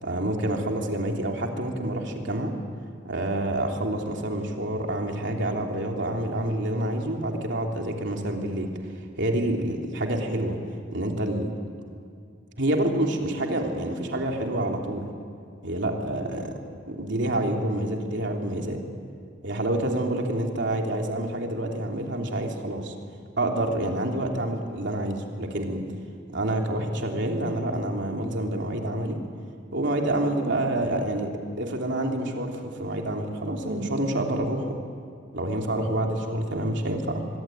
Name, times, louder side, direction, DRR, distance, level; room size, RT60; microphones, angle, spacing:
voice 1, 0.0-2.5 3.0-8.7 9.2-10.6 10.9-11.5 12.6-15.1 15.6-16.5 16.8-18.8 19.4-22.9 23.4-25.9 26.3-29.2 29.7-31.3 31.6-34.7 35.3-37.2, right 1 dB, 65° right, 1 dB, 3.2 m, -27 dB
24.5 x 23.0 x 9.2 m, 2.3 s
head